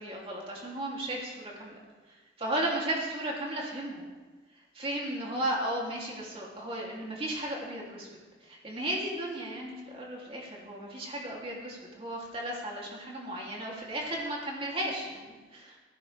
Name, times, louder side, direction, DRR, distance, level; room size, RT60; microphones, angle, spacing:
voice 1, 0.0-1.8 2.4-4.1 4.7-8.1 8.4-15.8, right 1 dB, 30° right, -3 dB, 2.9 m, -35 dB
19.0 x 15.5 x 3.4 m, 1.3 s
head